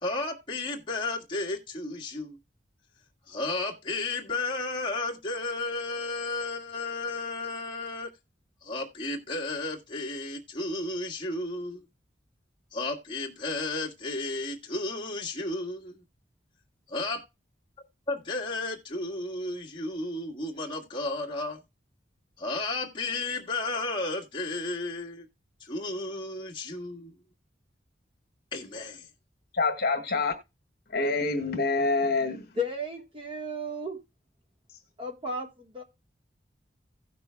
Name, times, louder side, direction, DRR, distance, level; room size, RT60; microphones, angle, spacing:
voice 1, 0.0-2.4 3.3-8.1 8.6-11.8 12.7-16.0 16.9-17.2 18.1-21.6 22.4-25.3 25.6-27.1 28.5-29.1, left 2 dB, 25° left, 1.8 m, -33 dB
voice 2, 29.5-30.3 30.9-32.5, left 3 dB, 55° left, 1.6 m, -26 dB
voice 3, 32.6-34.0 35.0-35.8, left 1 dB, 30° right, 1.4 m, -34 dB
17.0 x 6.0 x 2.2 m
head